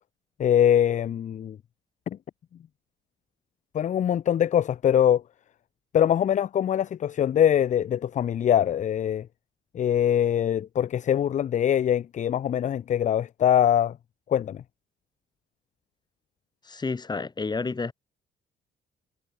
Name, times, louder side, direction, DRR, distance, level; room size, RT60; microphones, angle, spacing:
voice 1, 0.4-1.6 2.1-2.2 3.7-5.2 5.9-9.3 9.7-14.0 14.3-14.6, left 10 dB, 40° left, 0.4 m, -23 dB
voice 2, 16.6-17.9, left 4 dB, 20° left, 1.0 m, -30 dB
cardioid pair, 90°, 20 cm